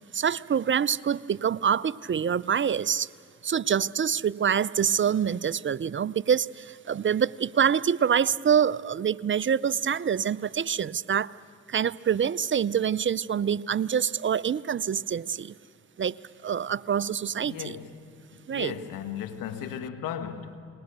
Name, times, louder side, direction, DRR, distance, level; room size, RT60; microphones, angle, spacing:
voice 1, 0.1-3.1 3.4-11.3 11.7-15.5 16.0-16.2 16.4-17.7 18.5-18.7, right 8 dB, 40° right, 19 dB, 0.5 m, -26 dB
voice 2, 17.4-18.0 18.5-20.6, left 9 dB, 85° left, 8 dB, 1.5 m, -36 dB
28.5 x 21.0 x 6.8 m, 2.5 s
supercardioid pair, 50°, 32 cm